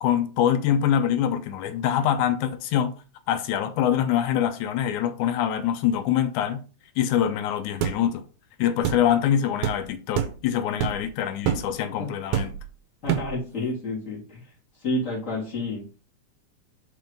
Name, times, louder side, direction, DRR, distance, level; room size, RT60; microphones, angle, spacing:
voice 1, 0.0-2.9 3.3-6.6 7.0-8.2 8.6-12.5, left 10 dB, 85° left, 2.2 m, -24 dB
sound 1, 7.8-8.0 8.8-9.0 9.6-9.8 10.2-10.4 10.8-11.1 11.5-11.7 12.3-12.7 13.1-13.4, right 10 dB, 75° right, 2.1 m, -26 dB
voice 2, 13.0-14.4 14.8-16.0, left 2 dB, 25° left, 3.3 m, -30 dB
6.5 x 4.8 x 5.0 m
omnidirectional pair, 3.5 m